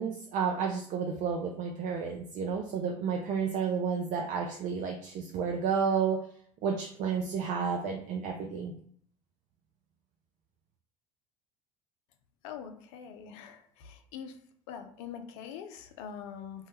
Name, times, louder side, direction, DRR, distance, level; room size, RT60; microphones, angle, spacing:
voice 1, 0.0-6.2 6.6-8.7, right 6 dB, 50° right, 2 dB, 0.4 m, -31 dB
voice 2, 12.4-14.4 14.7-16.7, left 7 dB, 70° left, 7 dB, 0.4 m, -44 dB
2.2 x 2.0 x 3.2 m, 0.62 s
hypercardioid pair, 75°, 17 cm